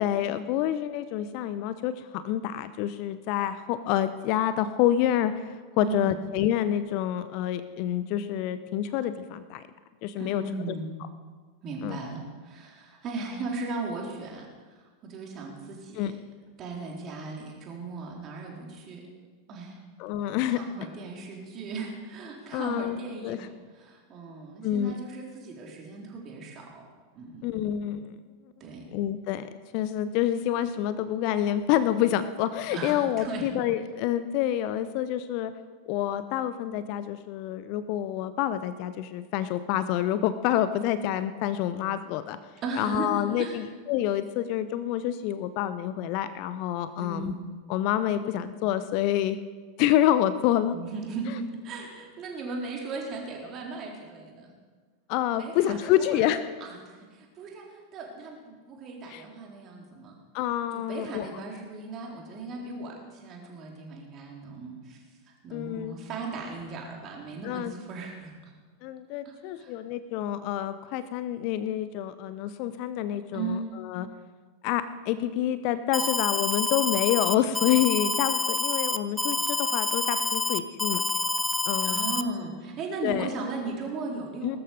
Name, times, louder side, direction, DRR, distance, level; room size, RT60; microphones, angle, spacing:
voice 1, 0.0-9.6 10.0-10.4 11.8-12.0 16.0-16.1 20.0-20.6 22.5-23.0 23.2-23.4 24.6-25.0 27.4-28.2 28.9-29.5 29.7-35.5 35.9-42.4 42.8-47.3 47.7-49.4 49.8-50.8 55.1-56.4 59.1-59.2 60.3-61.3 65.5-65.9 67.4-67.7 68.8-74.1 74.6-81.0 81.6-82.0 83.0-83.3 84.4-84.6, left 11 dB, 45° left, 13 dB, 0.7 m, -27 dB
voice 2, 5.8-6.2 10.2-10.9 11.6-14.5 14.8-16.1 16.6-19.0 19.5-19.8 20.5-26.9 27.1-27.5 28.6-28.9 32.7-33.5 42.6-43.1 43.4-43.6 47.0-47.3 50.7-54.5 55.4-56.3 56.6-60.2 60.7-65.0 65.4-68.5 69.2-69.7 73.3-73.7 81.8-84.6, right 3 dB, 35° right, -1 dB, 4.0 m, -37 dB
Alarm, 75.9-82.2, left 2 dB, 5° left, 0.7 m, -27 dB
20.0 x 13.0 x 5.1 m, 1.4 s
figure-of-eight pair, 85°, 0 cm